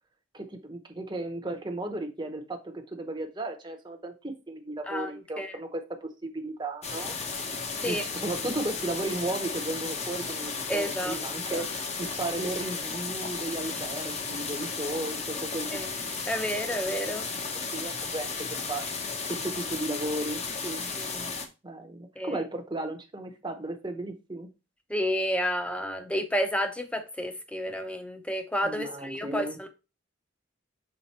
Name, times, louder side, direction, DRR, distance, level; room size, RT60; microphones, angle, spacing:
voice 1, 0.3-7.1 7.9-15.8 17.7-18.3 18.7-18.8 19.2-21.4 21.6-24.5 28.6-29.6, right 2 dB, 25° right, 0.9 m, -35 dB
voice 2, 4.9-5.6 7.8-8.0 10.7-11.2 11.5-11.6 15.7-15.9 16.3-17.3 20.9-21.1 22.2-22.4 24.9-29.7, equal, 5° left, 0.7 m, -31 dB
sound 1, 6.8-21.5, left 4 dB, 35° left, 0.9 m, -34 dB
5.9 x 3.8 x 4.2 m
head